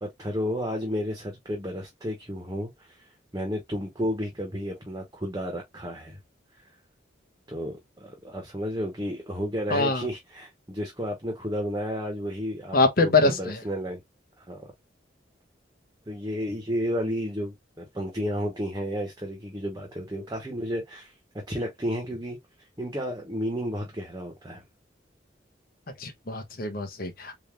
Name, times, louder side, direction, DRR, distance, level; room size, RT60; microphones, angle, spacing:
voice 1, 0.0-3.1 3.3-6.2 7.5-14.0 14.4-14.7 16.1-21.1 21.5-22.4 22.8-24.6, equal, 20° right, 1.0 m, -32 dB
voice 2, 9.7-10.0 12.7-13.6 26.0-27.4, left 3 dB, 50° left, 0.9 m, -24 dB
3.7 x 2.6 x 3.1 m
head